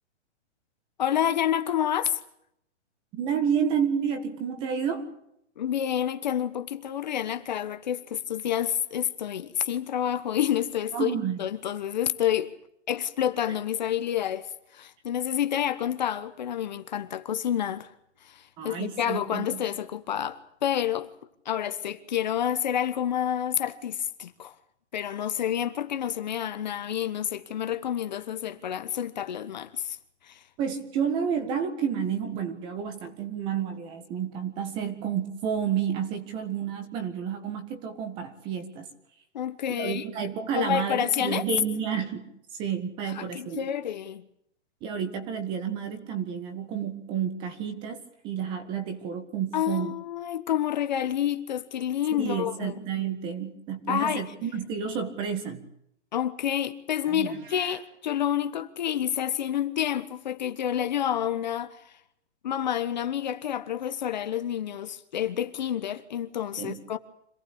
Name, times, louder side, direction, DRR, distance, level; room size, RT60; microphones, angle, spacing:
voice 1, 1.0-2.2 5.6-11.1 11.4-12.5 12.9-17.9 18.2-21.1 21.4-24.5 24.9-30.0 30.2-30.4 39.3-40.0 40.5-41.4 43.0-44.3 49.5-52.8 53.9-54.2 56.1-62.0 62.4-67.0, left 10 dB, 40° left, 1.2 m, -29 dB
voice 2, 3.1-5.1 10.9-11.4 18.6-19.6 30.6-38.9 39.8-42.3 42.5-43.7 44.8-49.9 52.2-55.6 57.1-57.4 66.6-66.8, right 7 dB, 15° right, 1.6 m, -30 dB
sound 1, 57.2-57.9, right 5 dB, 45° right, 3.5 m, -47 dB
26.0 x 18.5 x 8.7 m
hypercardioid pair, 180°, 36 cm